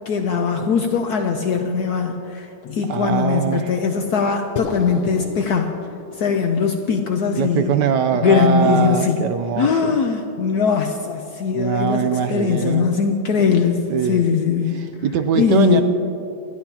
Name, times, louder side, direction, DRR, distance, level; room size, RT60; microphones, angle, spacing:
voice 1, 0.1-5.7 6.2-7.7 8.1-9.2 9.6-14.9 15.3-15.8, left 6 dB, 65° left, 5 dB, 1.1 m, -20 dB
voice 2, 2.9-3.8 7.3-10.0 11.5-12.9 13.9-14.3 14.7-15.8, right 7 dB, 70° right, 9 dB, 1.1 m, -22 dB
sound 1, 4.6-8.9, left 7 dB, 85° left, 1.5 m, -35 dB
29.0 x 11.0 x 2.8 m, 2.7 s
omnidirectional pair, 2.1 m